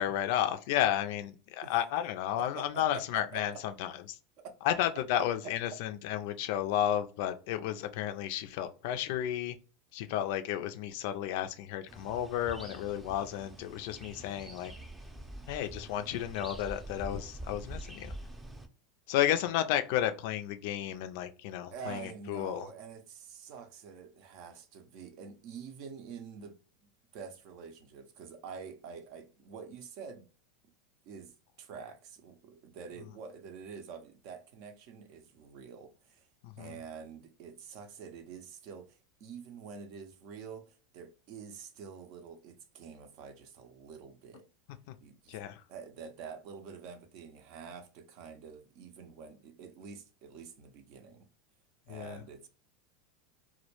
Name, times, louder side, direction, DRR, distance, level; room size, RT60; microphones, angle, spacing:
voice 1, 0.0-4.2 4.6-9.6 9.9-14.7 15.5-18.1 19.1-22.7 36.4-36.8 44.9-45.0 45.3-45.6 51.9-52.2, left 11 dB, 65° left, 0.3 m, -32 dB
voice 2, 2.6-3.6 4.4-4.6 21.7-26.6 27.1-30.3 31.1-31.3 31.6-36.3 36.6-44.4 45.0-45.4 45.7-51.3 51.9-52.5, right 6 dB, 60° right, 0.5 m, -47 dB
sound 1, 11.9-18.7, right 1 dB, 10° right, 0.5 m, -46 dB
2.2 x 2.1 x 2.9 m
hypercardioid pair, 100°, 0 cm